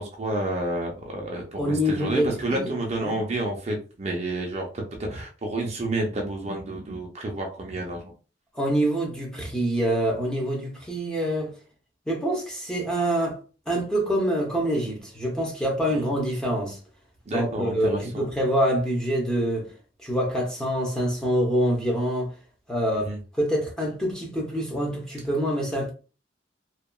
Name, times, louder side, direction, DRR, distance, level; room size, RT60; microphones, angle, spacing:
voice 1, 0.0-8.1 15.9-16.1 17.3-18.3 22.9-23.2, right 1 dB, 40° right, 0.5 m, -30 dB
voice 2, 1.6-2.7 3.0-3.2 8.5-11.5 12.1-13.4 13.7-16.8 17.3-19.7 20.0-22.3 22.7-23.1 23.4-25.9, equal, 5° left, 0.7 m, -25 dB
2.8 x 2.3 x 2.2 m
head